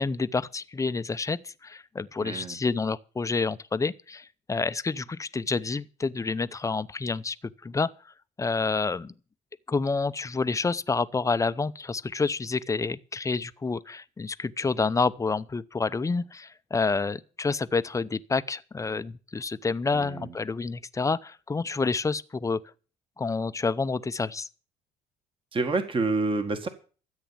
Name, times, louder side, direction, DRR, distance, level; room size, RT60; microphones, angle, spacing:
voice 1, 0.0-7.4 7.6-7.9 8.4-9.1 9.7-22.6 23.2-24.5, left 4 dB, 20° left, 0.7 m, -28 dB
voice 2, 2.2-2.6 19.9-20.3 25.5-26.7, right 3 dB, 30° right, 1.7 m, -28 dB
14.0 x 8.3 x 7.4 m
cardioid pair, 110°, 17 cm